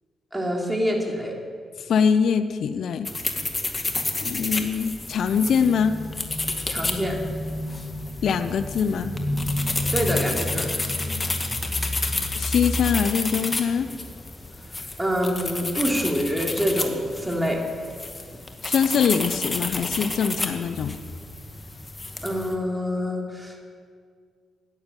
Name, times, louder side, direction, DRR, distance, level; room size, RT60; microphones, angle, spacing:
voice 1, 0.3-1.3 6.7-7.2 9.9-10.7 15.0-17.7 22.2-23.6, equal, 10° right, 0 dB, 3.2 m, -26 dB
voice 2, 1.9-3.1 4.2-5.9 8.2-9.1 12.3-13.9 18.6-21.0, left 6 dB, 70° left, 11 dB, 0.6 m, -23 dB
sound 1, 3.0-22.5, left 2 dB, 30° left, 1.7 m, -30 dB
10.5 x 9.8 x 9.0 m, 2.1 s
supercardioid pair, 55°, 0 cm